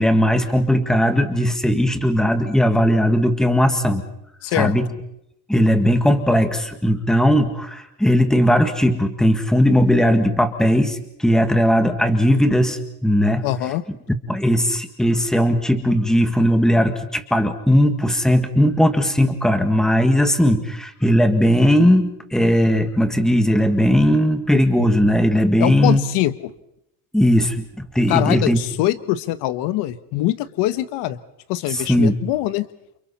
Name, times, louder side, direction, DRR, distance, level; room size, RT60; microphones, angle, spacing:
voice 1, 0.0-4.0 4.5-4.8 5.5-13.5 14.3-26.0 27.1-28.6 31.7-32.1, equal, ahead, 7 dB, 1.7 m, -18 dB
voice 2, 4.4-4.7 13.4-13.8 25.6-26.5 28.1-31.2 31.5-32.6, left 15 dB, 75° left, 13 dB, 1.3 m, -23 dB
29.5 x 28.0 x 4.3 m, 0.81 s
cardioid pair, 155°, 42 cm